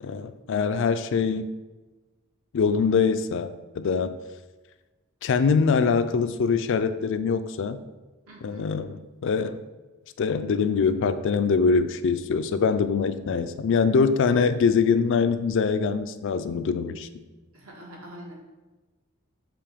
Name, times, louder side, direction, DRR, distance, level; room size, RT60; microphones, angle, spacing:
voice 1, 0.0-1.5 2.5-4.2 5.2-7.8 8.4-9.6 10.2-17.1, left 5 dB, 60° left, 11 dB, 0.4 m, -23 dB
voice 2, 8.3-8.7 17.5-18.3, right 1 dB, 80° right, -3 dB, 1.7 m, -44 dB
6.9 x 3.1 x 5.0 m, 1.2 s
head